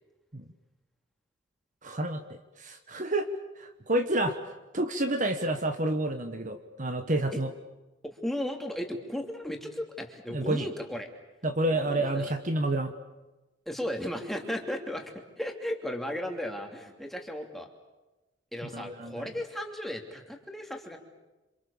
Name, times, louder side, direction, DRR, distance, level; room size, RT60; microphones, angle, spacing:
voice 1, 1.8-3.3 3.6-7.5 10.3-10.7 11.4-12.9 18.7-19.3, right 1 dB, 40° right, 7 dB, 1.3 m, -29 dB
voice 2, 8.0-11.1 11.7-12.3 13.7-17.7 18.5-21.0, left 1 dB, ahead, 2 dB, 2.9 m, -35 dB
27.5 x 27.0 x 7.2 m, 1.1 s
head